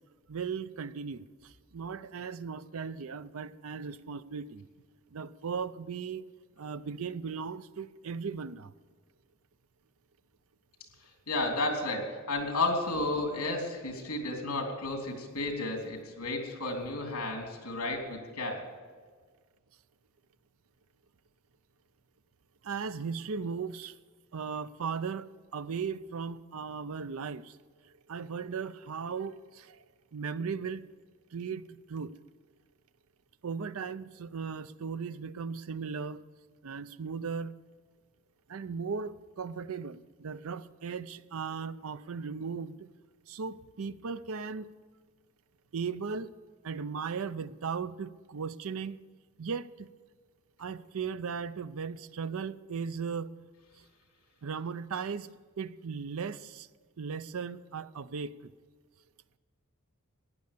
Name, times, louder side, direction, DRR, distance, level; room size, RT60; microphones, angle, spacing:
voice 1, 0.3-4.6 5.1-6.2 6.6-8.7 22.6-24.0 24.3-27.6 27.8-29.8 30.1-30.9 31.3-32.1 33.4-36.2 36.6-37.5 38.5-42.9 43.3-44.7 45.7-46.3 46.6-49.0 49.4-49.9 50.6-53.3 53.8-53.9 54.4-55.3 55.6-56.7 57.0-58.3, right 5 dB, 70° right, 15 dB, 0.5 m, -37 dB
voice 2, 11.3-18.7, left 2 dB, 75° left, 2 dB, 3.2 m, -32 dB
15.0 x 10.5 x 6.8 m, 1.5 s
head